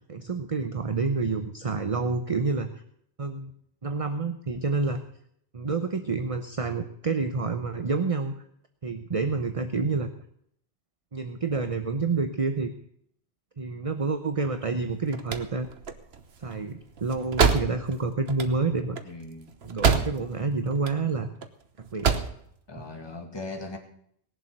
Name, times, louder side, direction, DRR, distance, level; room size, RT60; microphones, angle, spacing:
voice 1, 0.1-2.7 3.2-3.5 3.8-5.0 5.5-8.3 8.8-10.1 11.1-12.7 13.6-15.7 16.4-19.0 19.6-21.3 21.8-22.1 22.8-22.9, right 4 dB, 35° right, 8 dB, 0.9 m, -28 dB
sound 1, 14.8-20.5 20.7-21.5 21.8-22.4, right 5 dB, 70° right, 1.4 m, -27 dB
voice 2, 19.0-19.5 22.7-23.8, left 2 dB, 25° left, 3 dB, 2.1 m, -39 dB
19.5 x 7.7 x 6.7 m, 0.68 s
omnidirectional pair, 1.1 m